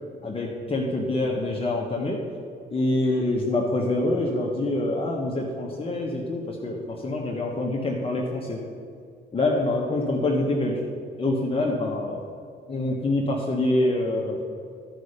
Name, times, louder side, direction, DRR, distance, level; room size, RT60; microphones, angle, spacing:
voice 1, 0.2-2.2 2.7-8.6 9.3-10.8 11.2-12.2 12.7-14.4, left 2 dB, 30° left, -2 dB, 1.3 m, -25 dB
11.5 x 5.5 x 6.6 m, 2.5 s
cardioid pair, 90°, 20 cm